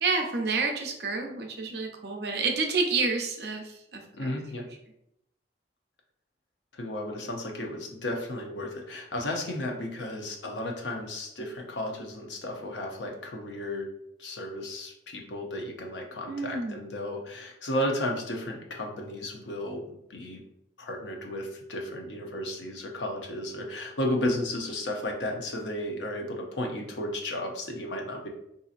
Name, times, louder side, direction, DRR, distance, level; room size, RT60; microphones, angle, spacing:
voice 1, 0.0-4.4 16.3-16.8, right 4 dB, 65° right, 2 dB, 0.6 m, -29 dB
voice 2, 4.2-4.6 6.7-13.9 14.2-20.4 20.8-28.3, left 1 dB, 80° left, 2 dB, 0.6 m, -33 dB
3.8 x 2.8 x 2.4 m, 0.78 s
head